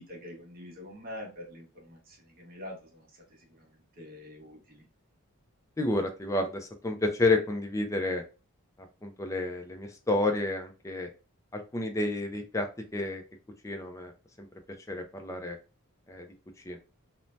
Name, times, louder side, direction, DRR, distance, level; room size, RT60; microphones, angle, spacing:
voice 1, 0.0-4.8, left 1 dB, 40° right, 0 dB, 0.8 m, -46 dB
voice 2, 5.8-8.2 9.0-11.1 11.5-12.7 12.9-13.2 13.6-14.1 14.4-14.5 14.9-15.6 16.1-16.3 16.7-16.8, left 2 dB, 15° left, 4 dB, 0.3 m, -30 dB
2.6 x 2.1 x 3.1 m, 0.33 s
head